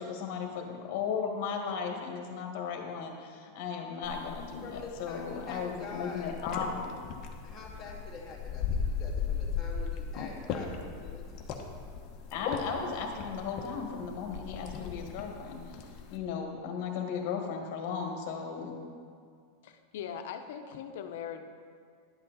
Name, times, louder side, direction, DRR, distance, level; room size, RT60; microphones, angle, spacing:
voice 1, 0.0-7.0 12.3-18.8, left 6 dB, 55° left, 2 dB, 1.6 m, -36 dB
sound 1, 4.0-16.2, left 6 dB, 40° left, 1.0 m, -38 dB
voice 2, 4.6-6.3 7.4-11.7, left 4 dB, 15° left, -7 dB, 2.4 m, -46 dB
voice 3, 19.6-21.5, left 8 dB, 70° left, 7 dB, 0.8 m, -40 dB
11.0 x 8.3 x 4.1 m, 2.2 s
supercardioid pair, 150°, 0 cm